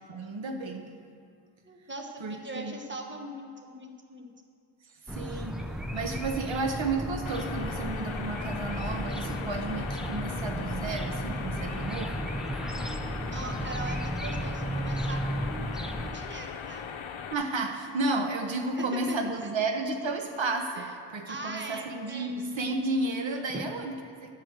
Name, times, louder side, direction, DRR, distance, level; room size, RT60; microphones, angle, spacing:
voice 1, 0.1-0.9 2.2-2.8 5.0-12.3 17.3-24.3, right 2 dB, 70° right, 4 dB, 0.9 m, -32 dB
voice 2, 1.6-4.3 13.3-16.9 18.8-19.2 20.8-20.9 21.3-22.3 23.5-23.6, right 2 dB, 25° right, 3 dB, 1.0 m, -40 dB
sound 1, 5.1-16.1, equal, ahead, 0.6 m, -34 dB
sound 2, 7.3-17.3, left 7 dB, 75° left, 0.7 m, -39 dB
11.5 x 4.7 x 7.7 m, 2.3 s
wide cardioid pair, 75°, 47 cm